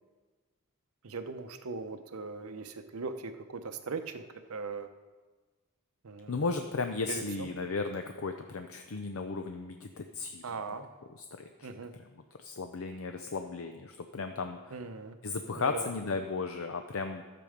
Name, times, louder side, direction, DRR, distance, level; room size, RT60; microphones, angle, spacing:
voice 1, 1.0-4.2 4.5-4.9 6.0-6.4 7.1-7.5 10.4-10.9 11.6-11.9 14.7-15.2 15.6-15.9, right 4 dB, 75° right, 8 dB, 0.8 m, -39 dB
voice 2, 6.3-10.6 11.4-11.7 11.9-12.1 12.4-14.8 15.2-17.2, left 4 dB, 65° left, 6 dB, 0.6 m, -35 dB
12.5 x 6.9 x 5.1 m, 1.4 s
head